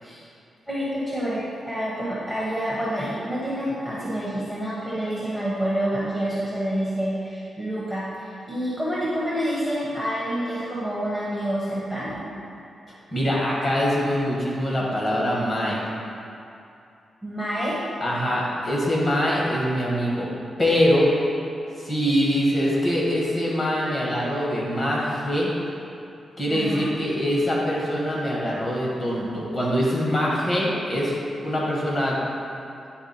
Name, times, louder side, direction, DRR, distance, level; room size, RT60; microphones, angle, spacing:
voice 1, 0.7-12.3 17.2-17.8 26.5-26.9, equal, 10° left, -8 dB, 0.9 m, -28 dB
voice 2, 13.1-15.8 18.0-20.3 20.6-21.1 21.8-25.5 26.4-31.1 31.4-32.2, equal, 35° left, -5 dB, 1.5 m, -23 dB
9.6 x 3.4 x 4.3 m, 2.6 s
wide cardioid pair, 165°, 0 cm